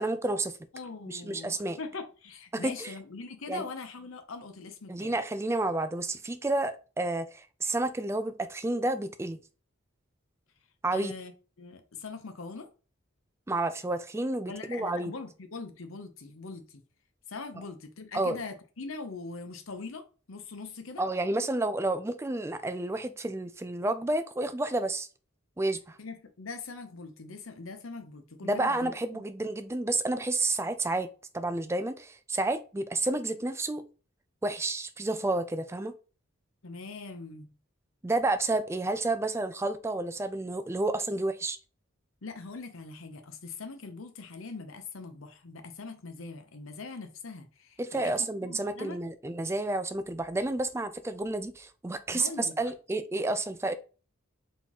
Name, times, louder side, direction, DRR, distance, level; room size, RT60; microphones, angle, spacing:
voice 1, 0.0-0.6 1.1-1.8 2.5-2.9 3.5-3.6 4.9-9.4 10.8-11.1 13.5-15.1 18.1-18.4 21.0-25.1 25.6-26.0 28.4-31.1 31.3-33.8 34.4-35.9 38.0-41.6 47.8-53.7, right 2 dB, 15° right, 0.3 m, -30 dB
voice 2, 0.7-5.2 10.9-12.7 14.5-16.8 17.3-21.0 26.0-29.2 36.6-37.5 42.2-48.1 48.4-49.0 52.1-52.5, left 4 dB, 75° left, 0.8 m, -42 dB
4.2 x 3.7 x 3.0 m
head